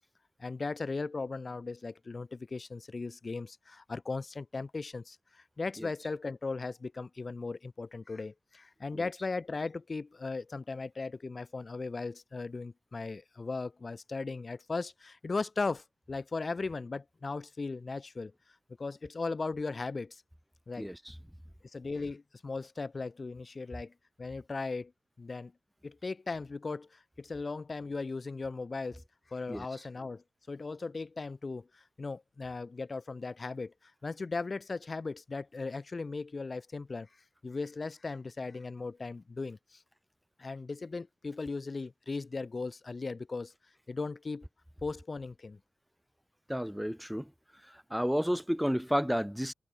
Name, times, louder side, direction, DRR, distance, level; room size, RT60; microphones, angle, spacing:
voice 1, 0.4-18.3 18.8-20.2 20.7-20.9 21.7-24.9 25.2-25.5 25.8-37.1 37.4-39.8 40.4-43.5 43.9-44.5 44.8-45.6, left 3 dB, 35° left, 1.2 m, -37 dB
voice 2, 20.8-21.1 29.5-29.7 46.5-47.2 47.6-49.5, equal, ahead, 0.6 m, -31 dB
open air
wide cardioid pair, 110°, 0 cm